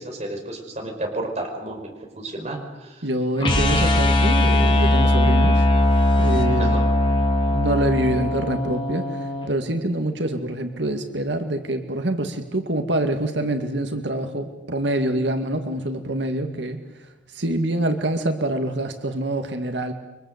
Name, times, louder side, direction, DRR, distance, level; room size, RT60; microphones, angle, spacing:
voice 1, 0.0-3.1 6.6-6.8, right 1 dB, 35° right, 2 dB, 5.4 m, -32 dB
voice 2, 3.0-5.7 6.2-6.8 7.5-16.8 17.3-19.9, right 1 dB, 70° right, 6 dB, 2.2 m, -25 dB
sound 1, 3.4-9.5, left 1 dB, 25° left, 4.0 m, -19 dB
29.5 x 24.5 x 8.1 m, 1.1 s
head